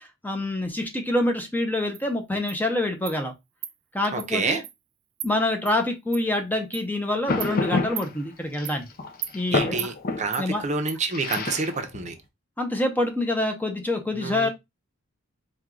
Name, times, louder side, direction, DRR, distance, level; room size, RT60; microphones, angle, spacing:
voice 1, 0.0-3.3 3.9-4.6 5.2-8.8 9.3-9.9 10.4-10.6 12.6-14.5, left 1 dB, 10° left, 0.6 m, -26 dB
Insect, 1.9-2.0 2.5-2.6 3.1-3.2 3.6-3.7 4.2-4.3 4.6-4.7 5.2-5.3 5.7-5.8 6.1-6.2 6.7-6.8 7.4-7.5 8.0-8.1 8.7-8.8 9.2-9.3 9.8-9.9 10.3-10.4 10.9-11.0 11.3-11.4, right 12 dB, 75° right, 0.5 m, -34 dB
voice 2, 4.1-4.6 9.5-12.1 14.2-14.5, right 3 dB, 35° right, 0.7 m, -28 dB
sound 1, 7.3-8.1 8.5-10.3 11.1-12.1, left 3 dB, 45° left, 0.6 m, -28 dB
4.5 x 2.3 x 3.7 m
head